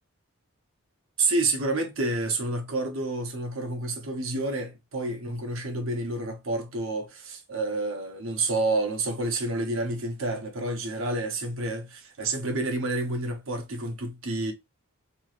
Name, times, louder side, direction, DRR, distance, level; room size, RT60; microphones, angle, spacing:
voice 1, 1.2-14.5, right 2 dB, 65° right, 0.8 m, -29 dB
3.0 x 2.9 x 2.4 m
head